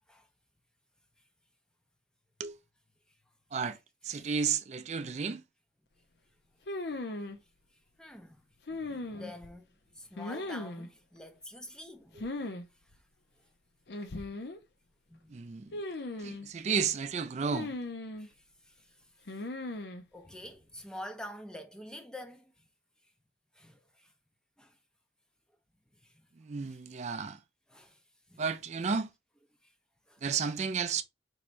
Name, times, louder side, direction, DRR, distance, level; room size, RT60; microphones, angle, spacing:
voice 1, 4.0-5.4 15.3-15.8 16.2-17.7 26.4-27.4 28.4-29.1 30.2-31.0, right 6 dB, 40° right, 0.4 m, -32 dB
sound 1, 6.7-7.4 8.7-9.5 10.2-10.9 12.2-12.6 12.9-13.0 13.9-14.6 15.7-16.5 17.5-18.3 19.3-20.0, left 2 dB, 70° left, 0.6 m, -38 dB
voice 2, 8.0-8.4 8.7-12.6 15.1-15.3 18.2-18.3 18.6-18.9 20.1-22.5 23.6-24.1 24.6-24.8 26.0-26.3 27.7-28.0 28.3-28.5 29.6-29.7 30.1-30.2, left 1 dB, 5° left, 0.6 m, -47 dB
4.5 x 3.1 x 2.6 m
head